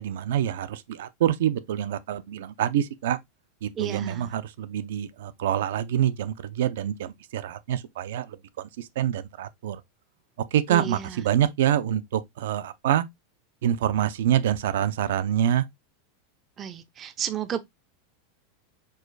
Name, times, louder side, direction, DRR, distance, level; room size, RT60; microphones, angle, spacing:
voice 1, 0.0-3.2 3.6-9.8 10.5-13.0 13.6-15.6, right 10 dB, 75° right, 0.5 m, -26 dB
voice 2, 3.8-4.3 10.7-11.2 16.6-17.6, right 10 dB, 20° right, 0.4 m, -32 dB
4.6 x 2.3 x 4.6 m
supercardioid pair, 165°, 0 cm